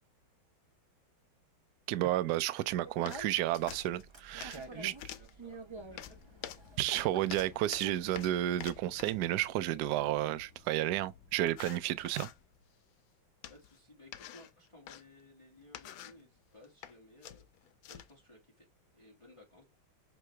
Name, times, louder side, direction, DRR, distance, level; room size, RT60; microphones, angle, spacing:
voice 1, 1.9-4.9 6.8-12.3, right 14 dB, 75° right, 1.0 m, -32 dB
Speech, 2.6-8.6, right 3 dB, 35° right, 0.4 m, -49 dB
sound 1, 3.1-3.4 3.7-4.7 5.0-5.3 6.0-9.3 10.8-10.9 11.5-12.4 13.4-13.8 14.1-15.0 15.6-16.2 16.6-16.9 17.2-18.2, left 11 dB, 85° left, 1.5 m, -47 dB
voice 2, 4.6-6.2 6.7-6.8 13.5-18.7 18.9-19.6, left 1 dB, 15° left, 2.0 m, -58 dB
sound 2, 5.7-12.7, left 6 dB, 55° left, 1.5 m, -59 dB
7.5 x 3.8 x 3.3 m
omnidirectional pair, 2.1 m